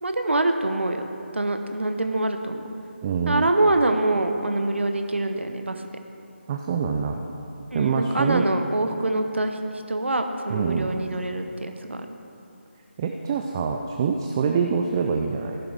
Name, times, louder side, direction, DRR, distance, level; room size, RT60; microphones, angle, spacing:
voice 1, 0.0-1.1 1.3-2.6 3.3-5.8 7.7-9.6 9.9-12.1, right 2 dB, 70° right, 6 dB, 1.0 m, -25 dB
voice 2, 3.0-3.5 6.5-7.2 7.7-8.5 10.5-10.9 13.0-15.6, right 6 dB, 20° right, 3 dB, 0.4 m, -25 dB
15.5 x 11.0 x 3.5 m, 2.9 s
figure-of-eight pair, 155°, 6 cm